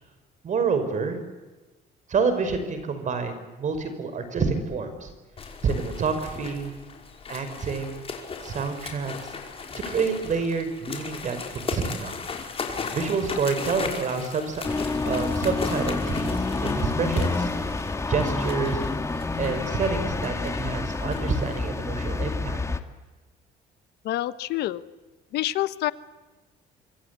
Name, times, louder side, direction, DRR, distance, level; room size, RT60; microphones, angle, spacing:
voice 1, 0.4-1.2 2.1-5.1 5.6-6.7 7.3-8.0 8.4-9.3 9.7-12.2 12.9-14.6 15.0-17.5 18.1-18.9 19.4-22.6, right 5 dB, 45° right, 9 dB, 5.4 m, -28 dB
sound 1, 5.4-22.4, left 5 dB, 35° left, 5.3 m, -37 dB
sound 2, 14.6-22.8, left 3 dB, 15° left, 2.0 m, -28 dB
voice 2, 24.0-24.8 25.3-25.9, left 14 dB, 75° left, 14 dB, 1.2 m, -27 dB
25.5 x 25.5 x 8.4 m, 1.2 s
cardioid pair, 110°, 17 cm